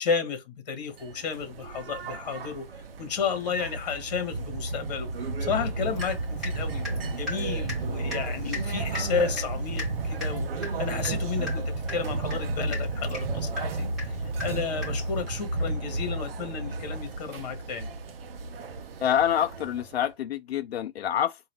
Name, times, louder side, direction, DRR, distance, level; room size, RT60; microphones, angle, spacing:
voice 1, 0.0-2.7 3.0-13.9 14.4-17.9, left 6 dB, 45° left, 1.6 m, -32 dB
sound 1, 0.9-20.1, right 3 dB, 70° right, 0.8 m, -32 dB
Water tap faucet / Drip, 6.0-6.6 6.8-15.2, left 3 dB, ahead, 2.3 m, -39 dB
voice 2, 19.0-21.4, left 10 dB, 90° left, 0.6 m, -26 dB
3.9 x 2.6 x 3.2 m
hypercardioid pair, 175°, 30 cm